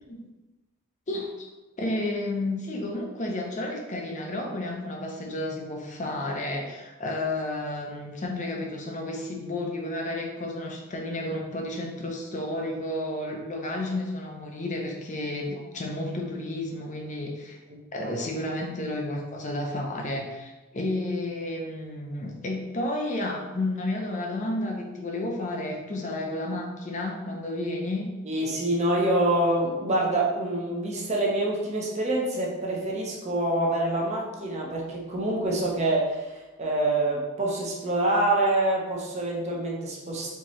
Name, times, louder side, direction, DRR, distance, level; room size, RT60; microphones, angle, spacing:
voice 1, 1.8-17.6 17.9-28.1, left 1 dB, 35° left, 1 dB, 0.6 m, -31 dB
voice 2, 17.7-18.1 28.2-40.3, right 1 dB, 30° right, -2 dB, 0.7 m, -26 dB
4.5 x 3.0 x 3.0 m, 1.1 s
head